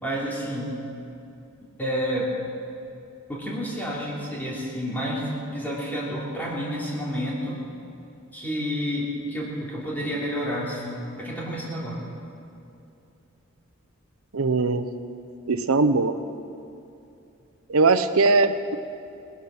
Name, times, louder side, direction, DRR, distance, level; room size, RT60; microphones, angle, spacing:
voice 1, 0.0-0.7 1.8-2.3 3.3-7.6 8.3-12.1, equal, 10° left, -6 dB, 3.2 m, -30 dB
voice 2, 14.3-14.9 15.5-16.1 17.7-18.8, right 3 dB, 85° right, 10 dB, 0.8 m, -20 dB
19.5 x 11.5 x 6.1 m, 2.7 s
head